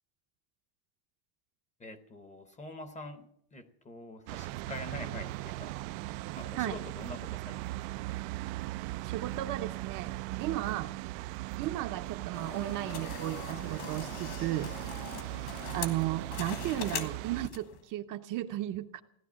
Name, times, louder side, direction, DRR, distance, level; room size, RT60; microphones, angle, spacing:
voice 1, 1.8-6.0 6.3-7.8 15.1-15.4, left 2 dB, 15° left, 10 dB, 0.8 m, -46 dB
sound 1, 4.3-17.5, right 18 dB, 90° right, 0.6 m, -39 dB
voice 2, 9.0-10.1 10.4-10.9 11.6-14.7 15.7-19.0, right 14 dB, 40° right, 7 dB, 0.7 m, -34 dB
sound 2, 12.3-17.8, left 7 dB, 60° left, 2.3 m, -42 dB
17.0 x 11.0 x 7.3 m, 0.71 s
cardioid pair, 180°, 48 cm